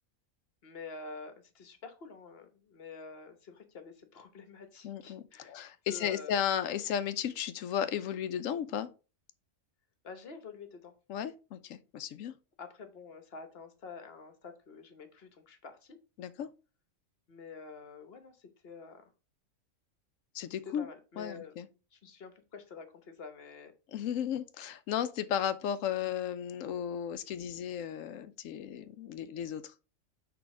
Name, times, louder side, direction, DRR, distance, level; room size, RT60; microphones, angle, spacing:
voice 1, 0.6-5.6 5.8-6.4 10.0-10.9 12.6-16.0 17.3-19.1 20.6-21.6 21.9-23.7 26.0-26.1, left 4 dB, 50° left, 1.2 m, -48 dB
voice 2, 4.8-8.9 11.1-12.3 16.2-16.5 20.3-20.9 21.2-21.7 23.9-29.7, left 9 dB, 80° left, 1.0 m, -34 dB
6.1 x 3.3 x 4.8 m
omnidirectional pair, 1.4 m